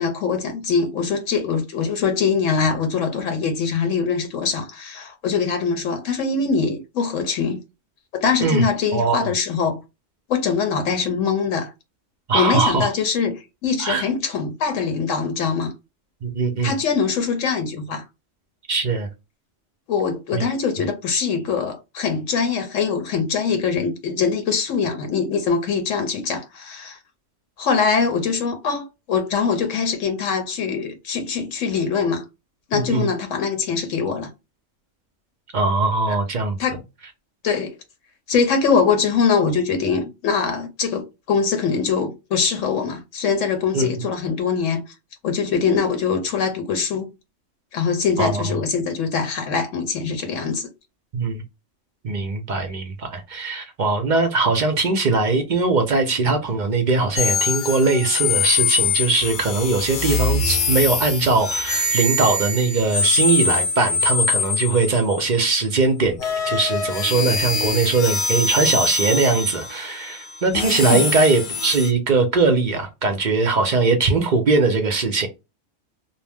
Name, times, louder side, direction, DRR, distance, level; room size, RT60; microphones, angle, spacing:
voice 1, 0.0-7.6 8.1-9.8 10.3-11.7 12.3-15.7 16.6-18.0 19.9-27.0 27.6-32.2 32.7-34.3 36.1-36.2 36.6-36.8 37.4-37.7 38.3-44.8 45.2-47.1 47.7-50.7 70.9-71.0, left 5 dB, 80° left, 1.0 m, -23 dB
voice 2, 8.9-9.3 12.3-12.9 13.8-14.1 16.2-16.8 18.7-19.1 20.3-20.4 32.7-33.1 35.5-36.8 43.7-43.9 48.2-48.5 51.1-51.4 52.0-66.2 66.4-75.3, right 3 dB, 50° right, 0.5 m, -20 dB
sound 1, 57.2-65.5 66.2-71.9, left 4 dB, 55° left, 0.6 m, -23 dB
2.6 x 2.0 x 3.3 m
omnidirectional pair, 1.3 m